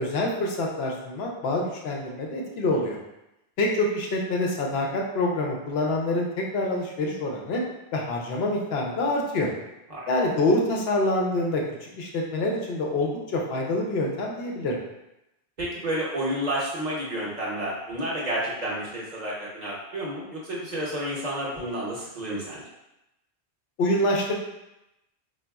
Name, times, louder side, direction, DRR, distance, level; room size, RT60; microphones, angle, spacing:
voice 1, 0.0-3.0 3.6-7.6 7.9-9.5 10.1-14.8 23.8-24.3, left 1 dB, 70° left, -1 dB, 0.8 m, -26 dB
voice 2, 15.6-22.6, right 1 dB, 45° right, -6 dB, 0.8 m, -30 dB
3.8 x 2.3 x 2.2 m, 0.91 s
omnidirectional pair, 1.1 m